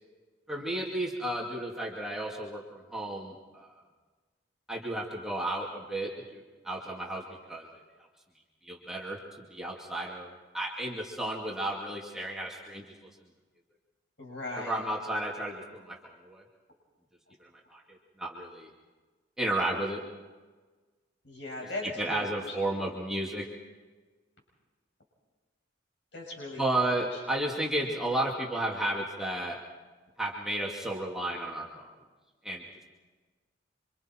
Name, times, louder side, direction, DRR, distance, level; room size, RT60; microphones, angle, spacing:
voice 1, 0.5-3.7 4.7-7.7 8.6-12.9 14.6-16.0 16.2-16.4 17.4-18.7 19.4-20.0 21.8-23.5 26.6-29.6 30.2-31.9 32.4-32.8, right 1 dB, 5° right, -4 dB, 2.4 m, -33 dB
voice 2, 14.2-14.8 21.2-22.6 26.1-26.6 27.1-27.2, left 2 dB, 60° left, -1 dB, 6.4 m, -39 dB
28.0 x 26.0 x 4.5 m, 1.3 s
head